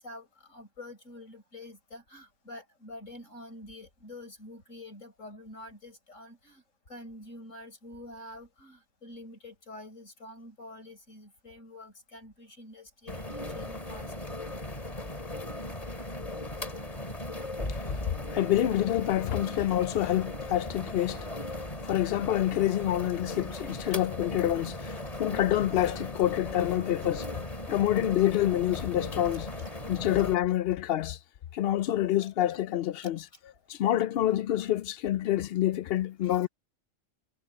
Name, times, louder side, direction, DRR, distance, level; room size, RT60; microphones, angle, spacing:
voice 1, 0.0-14.4 23.9-24.0 24.8-25.2 27.0-27.2 29.3-30.1 33.0-33.4 36.2-36.5, left 1 dB, 80° left, 6.6 m, -48 dB
sound 1, 13.1-30.4, left 1 dB, 30° left, 3.2 m, -38 dB
voice 2, 18.3-21.3 21.8-27.4 27.7-29.5 29.9-31.2 31.5-33.3 33.7-36.5, left 13 dB, 65° left, 0.6 m, -27 dB
omnidirectional pair, 1.3 m